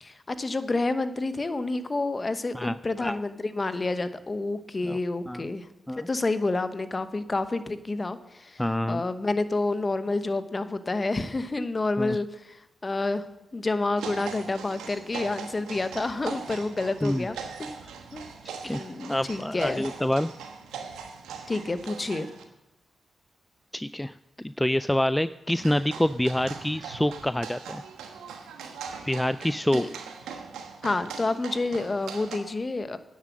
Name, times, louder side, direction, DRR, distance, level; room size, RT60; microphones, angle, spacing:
voice 1, 0.0-5.7 5.9-8.6 8.9-12.6 12.8-13.2 13.5-17.7 18.1-18.2 18.6-19.8 21.5-22.3 29.7-29.9 30.8-33.0, left 2 dB, 35° left, 11 dB, 1.0 m, -29 dB
voice 2, 2.5-3.2 4.8-5.0 5.3-5.4 5.9-6.1 8.6-9.0 12.0-12.2 17.0-17.3 18.6-20.3 23.7-27.8 29.0-29.8, left 1 dB, 10° left, 14 dB, 0.4 m, -27 dB
sound 1, 13.9-22.4 25.5-32.4, right 6 dB, 90° right, 1.1 m, -41 dB
10.5 x 7.4 x 7.3 m, 0.92 s
supercardioid pair, 45°, 0 cm